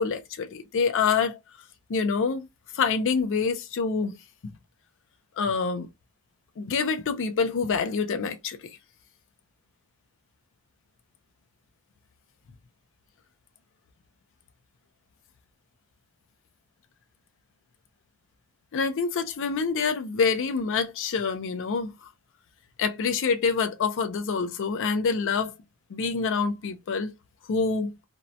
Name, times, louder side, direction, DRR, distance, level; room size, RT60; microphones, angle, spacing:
voice 1, 0.0-1.4 1.9-2.5 2.7-4.2 5.4-5.9 6.6-8.7 18.7-21.9 22.8-25.5 25.9-27.1 27.5-27.9, left 5 dB, 60° left, 0.4 m, -26 dB
2.6 x 2.0 x 2.5 m
head